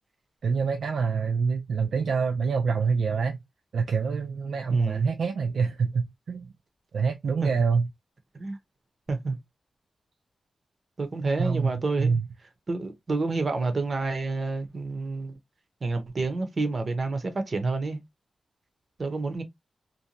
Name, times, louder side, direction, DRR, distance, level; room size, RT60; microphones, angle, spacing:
voice 1, 0.4-3.4 3.7-6.5 6.9-7.9 11.4-12.3, right 5 dB, 85° right, 0.4 m, -26 dB
voice 2, 4.7-5.1 7.4-7.5 8.3-8.6 9.1-9.4 11.0-12.2 12.7-15.3 15.8-18.0 19.0-19.4, right 3 dB, 40° right, 0.7 m, -28 dB
2.6 x 2.2 x 2.8 m
wide cardioid pair, 145°, 0 cm